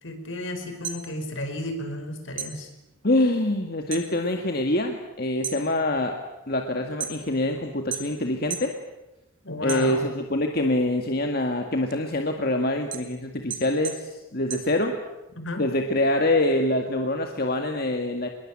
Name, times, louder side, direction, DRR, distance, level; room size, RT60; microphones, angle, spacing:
voice 1, 0.0-2.7 9.4-10.1 15.4-15.7, left 1 dB, 70° left, 7 dB, 5.0 m, -33 dB
sound 1, 0.6-2.0 2.3-4.1 4.5-4.9 5.3-7.5 7.9-8.8 9.1-10.3 10.8-15.3, right 7 dB, 70° right, 2.7 m, -36 dB
voice 2, 3.0-6.1 6.5-8.7 9.6-14.9 15.6-18.3, left 1 dB, 50° left, 3 dB, 2.0 m, -25 dB
26.5 x 21.5 x 8.9 m, 0.96 s
head